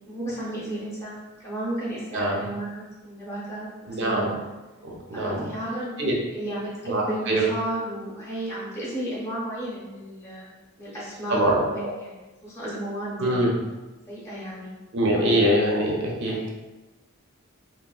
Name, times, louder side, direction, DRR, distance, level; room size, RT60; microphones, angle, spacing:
voice 1, 0.1-4.4 5.1-6.0 6.3-10.5 10.8-13.5 14.1-14.7 15.1-15.4 16.3-16.5, right 1 dB, 15° left, -7 dB, 0.7 m, -33 dB
voice 2, 2.1-2.4 3.9-4.3 4.8-5.5 6.0-6.1 6.9-7.4 11.3-11.9 13.2-13.5 14.9-16.4, right 1 dB, 55° right, -2 dB, 0.6 m, -23 dB
3.4 x 2.1 x 2.3 m, 1.1 s
head